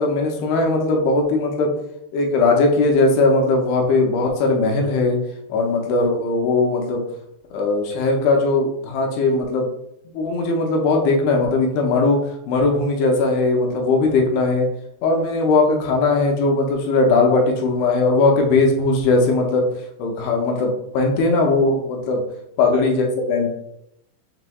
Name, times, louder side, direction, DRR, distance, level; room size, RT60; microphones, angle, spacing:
voice 1, 0.0-1.7 2.1-5.2 5.5-7.0 7.5-9.7 10.1-12.2 12.5-14.7 15.0-19.7 20.0-22.2 22.6-23.5, left 3 dB, 80° left, 1 dB, 2.5 m, -19 dB
6.7 x 3.1 x 2.3 m, 0.77 s
omnidirectional pair, 4.9 m